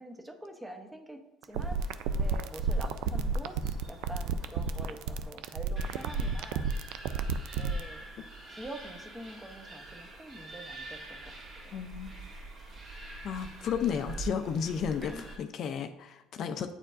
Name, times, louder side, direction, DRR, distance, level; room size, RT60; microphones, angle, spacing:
voice 1, 0.0-3.6 3.9-6.7 7.5-8.1 8.5-11.8 15.0-15.3, right 1 dB, 10° right, 5 dB, 0.7 m, -46 dB
sound 1, 1.4-7.8, right 5 dB, 75° right, 0.3 m, -31 dB
sound 2, 1.5-5.3 5.8-15.4, right 2 dB, 45° right, 2.0 m, -46 dB
voice 2, 11.7-12.2 13.2-16.7, left 7 dB, 50° left, 8 dB, 0.4 m, -33 dB
8.9 x 4.4 x 2.5 m, 0.95 s
supercardioid pair, 110°, 0 cm